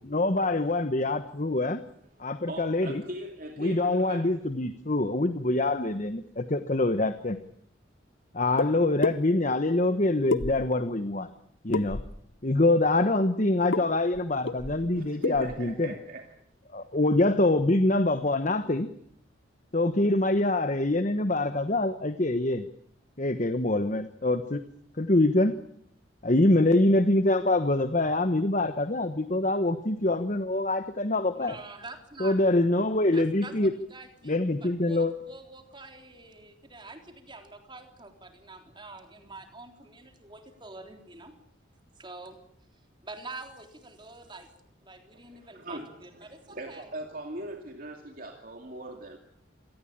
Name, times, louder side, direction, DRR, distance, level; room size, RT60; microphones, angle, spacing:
voice 1, 0.1-1.8 2.2-3.0 3.6-7.4 8.3-11.3 11.6-12.0 12.4-15.9 16.7-18.9 19.7-22.6 23.2-24.6 25.0-25.5 26.2-31.5 32.2-33.7 34.2-35.1, left 2 dB, 40° left, 10 dB, 1.1 m, -25 dB
voice 2, 2.2-4.3 14.4-14.5 14.9-16.3 45.2-45.9 46.2-49.2, right 1 dB, 45° right, 3 dB, 2.5 m, -40 dB
sound 1, 8.6-8.7 9.0-9.2 10.3-10.9 11.7-12.2 13.7-13.8 14.1-14.2 14.5-14.9 15.2-15.6, left 3 dB, 65° left, 0.9 m, -28 dB
voice 3, 31.3-32.8 33.1-41.4 42.0-42.4 43.0-44.5 44.8-46.9, right 3 dB, 25° right, 5 dB, 3.7 m, -46 dB
27.0 x 19.0 x 8.9 m, 0.69 s
head